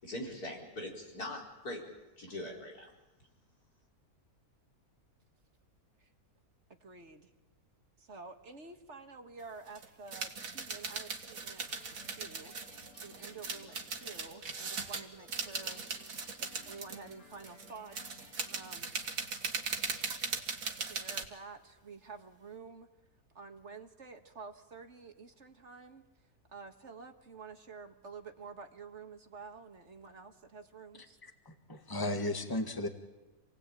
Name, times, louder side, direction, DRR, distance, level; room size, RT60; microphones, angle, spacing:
voice 1, 0.0-1.8 2.2-2.9, left 1 dB, 80° left, -1 dB, 5.1 m, -41 dB
voice 2, 6.7-7.3 8.0-12.5 13.0-15.8 16.4-18.9 20.6-22.9 23.3-31.2, right 4 dB, 50° right, 6 dB, 1.7 m, -50 dB
sound 1, 9.4-9.5 9.7-21.3, right 4 dB, 65° right, 2.1 m, -39 dB
sound 2, 11.7-18.7, left 4 dB, 55° left, 2.5 m, -59 dB
voice 3, 31.2-32.9, left 1 dB, 15° left, 5 dB, 1.8 m, -35 dB
28.0 x 18.5 x 8.9 m, 1.1 s
omnidirectional pair, 1.6 m